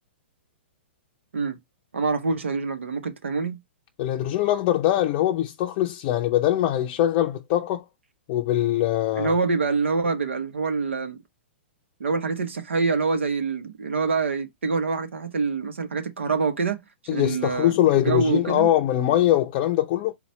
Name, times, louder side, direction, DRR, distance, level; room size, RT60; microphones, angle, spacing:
voice 1, 1.9-3.6 9.2-11.2 12.0-16.8 17.1-17.8 18.0-18.7, right 4 dB, 80° right, 0.9 m, -25 dB
voice 2, 4.0-7.8 8.3-9.3 17.1-20.1, left 12 dB, 40° left, 0.5 m, -22 dB
4.1 x 2.3 x 4.2 m
hypercardioid pair, 125°, 6 cm